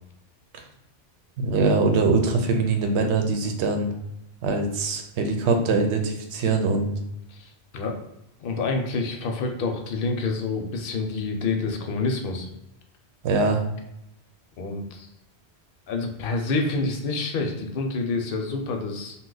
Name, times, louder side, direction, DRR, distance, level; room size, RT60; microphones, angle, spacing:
voice 1, 1.4-3.9 4.4-7.0 13.2-13.6, right 3 dB, 85° right, 4 dB, 0.9 m, -23 dB
voice 2, 7.3-8.0 8.4-12.5 14.6-15.1 15.9-19.1, left 3 dB, 65° left, 4 dB, 0.7 m, -28 dB
2.7 x 2.2 x 3.8 m, 0.83 s
omnidirectional pair, 1.1 m